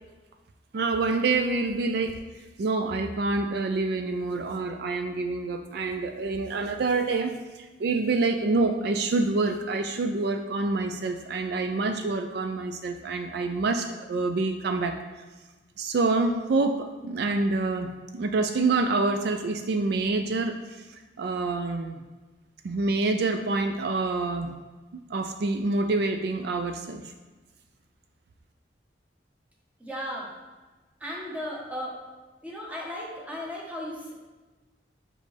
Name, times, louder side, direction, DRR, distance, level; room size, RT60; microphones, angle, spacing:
voice 1, 0.7-2.2 2.6-14.9 15.8-22.0 22.6-24.5 24.9-27.0, right 3 dB, 65° right, 6 dB, 0.4 m, -27 dB
voice 2, 29.8-30.3 31.0-32.0 32.4-34.1, equal, 10° right, -4 dB, 1.1 m, -35 dB
5.4 x 5.1 x 3.3 m, 1.2 s
head